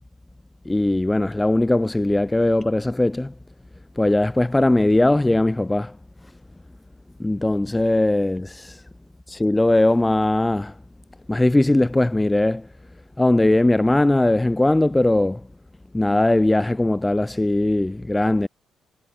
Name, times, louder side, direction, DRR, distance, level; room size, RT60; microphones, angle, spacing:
voice 1, 0.6-3.3 4.0-6.0 7.2-8.8 9.3-10.7 11.3-12.7 13.2-15.4 15.9-18.5, left 1 dB, 10° left, 4.8 m, -19 dB
cardioid pair, 90°, 0 cm